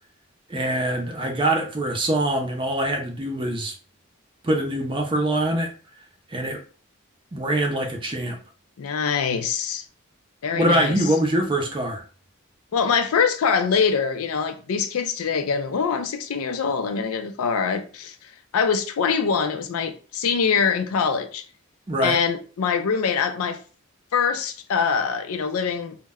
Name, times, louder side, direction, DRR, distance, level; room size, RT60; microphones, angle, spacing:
voice 1, 0.5-3.7 4.4-5.7 6.3-6.6 7.3-8.4 10.6-12.0 21.9-22.2, right 1 dB, 25° right, 0.4 m, -24 dB
voice 2, 8.8-9.8 10.4-11.0 12.7-21.4 22.0-23.6 24.1-26.0, left 6 dB, 90° left, 0.4 m, -24 dB
2.1 x 2.1 x 3.4 m
head